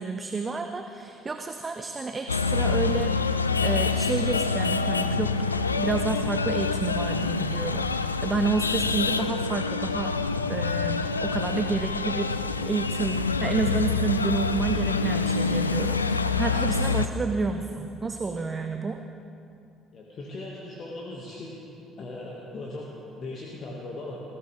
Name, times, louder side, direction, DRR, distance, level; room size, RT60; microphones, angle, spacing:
voice 1, 0.0-5.5 5.8-10.1 10.5-19.0, right 4 dB, 25° right, 6 dB, 0.8 m, -30 dB
sound 1, 2.3-17.1, left 4 dB, 85° left, 0.3 m, -26 dB
voice 2, 19.9-21.5 22.0-24.2, left 2 dB, 45° left, -3 dB, 2.1 m, -38 dB
20.5 x 16.5 x 3.6 m, 2.6 s
figure-of-eight pair, 50°, 0 cm